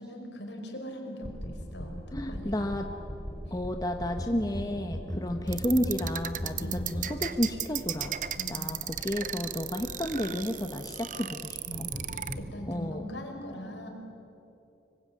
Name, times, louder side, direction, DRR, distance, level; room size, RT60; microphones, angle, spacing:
voice 1, 0.0-2.7 4.9-5.3 6.6-7.0 8.3-8.7 11.7-11.9 12.4-13.9, equal, 75° left, 3 dB, 5.2 m, -41 dB
sound 1, 1.2-12.4, equal, ahead, 4.3 m, -40 dB
voice 2, 2.1-2.9 3.5-8.1 8.5-11.9 12.7-13.1, left 1 dB, 20° left, 5 dB, 1.1 m, -31 dB
sound 2, 5.5-12.3, right 11 dB, 45° right, 0.9 m, -35 dB
25.5 x 24.0 x 9.6 m, 2.9 s
head